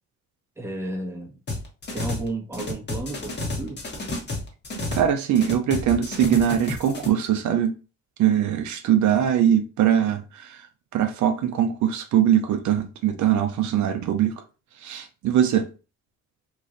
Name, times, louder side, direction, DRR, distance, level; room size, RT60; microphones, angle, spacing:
voice 1, 0.6-1.3 1.9-3.8, right 2 dB, 10° right, 1.0 m, -32 dB
sound 1, 1.5-2.3 2.5-5.1 5.4-7.1, left 2 dB, 35° left, 1.2 m, -31 dB
voice 2, 4.9-7.7 8.2-10.7 10.9-14.3 14.8-15.7, right 10 dB, 70° right, 0.6 m, -22 dB
3.1 x 2.5 x 3.8 m
cardioid pair, 90°, 30 cm